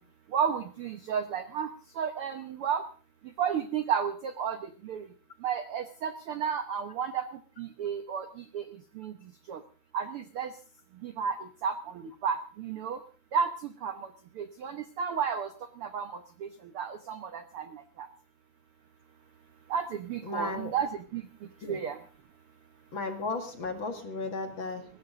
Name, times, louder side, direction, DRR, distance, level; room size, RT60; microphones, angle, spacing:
voice 1, 0.3-1.7 2.0-2.8 3.4-4.6 4.8-5.0 5.4-7.2 7.6-8.3 8.5-8.6 9.0-9.1 9.5-9.6 9.9-10.5 11.0-11.3 11.6-11.7 12.2-13.0 13.3-13.5 13.8-13.9 14.4-15.5 15.8-16.1 16.4-16.5 16.7-17.6 18.0-18.1 19.7-21.2 21.7-22.0, right 7 dB, 75° right, 9 dB, 1.2 m, -31 dB
voice 2, 20.2-20.7 21.6-21.8 22.9-24.9, left 3 dB, 40° left, 6 dB, 2.3 m, -35 dB
21.0 x 17.0 x 3.8 m, 0.38 s
omnidirectional pair, 3.9 m